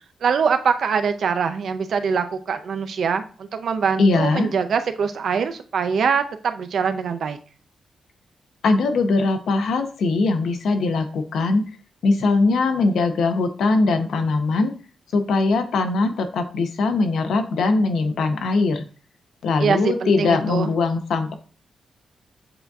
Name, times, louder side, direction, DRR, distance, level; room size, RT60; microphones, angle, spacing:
voice 1, 0.2-7.4 19.6-20.7, right 6 dB, 60° right, 8 dB, 0.4 m, -23 dB
voice 2, 4.0-4.5 8.6-11.7 12.0-14.7 15.1-18.8 19.4-21.3, left 3 dB, 80° left, 7 dB, 0.6 m, -21 dB
7.6 x 2.6 x 2.3 m, 0.39 s
wide cardioid pair, 175°, 0 cm